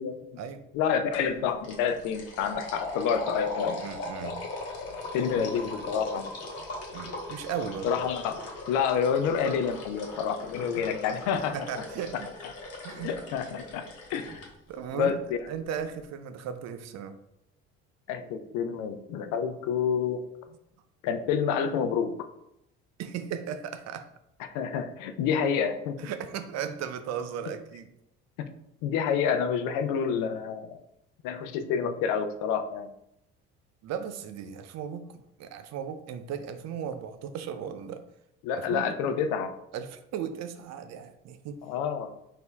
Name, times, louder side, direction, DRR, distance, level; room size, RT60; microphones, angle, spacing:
voice 1, 0.7-3.9 5.1-6.3 7.8-8.4 8.7-11.6 13.0-13.8 14.1-14.4 14.9-15.4 18.1-20.2 21.0-22.2 24.4-26.0 28.4-28.5 28.8-30.8 31.2-32.9 38.4-39.5 41.7-42.1, left 7 dB, 75° left, 8 dB, 0.5 m, -28 dB
sound 1, 1.1-1.3 1.6-14.5, left 2 dB, 50° left, 1.4 m, -39 dB
voice 2, 3.8-4.5 6.9-7.9 10.8-10.9 11.5-12.3 12.8-13.1 14.7-15.2 15.5-17.2 23.0-24.1 26.0-27.9 33.8-38.0 38.5-38.9 39.7-41.6, right 8 dB, 60° right, 9 dB, 0.5 m, -36 dB
4.2 x 2.7 x 3.4 m, 0.81 s
supercardioid pair, 75°, 31 cm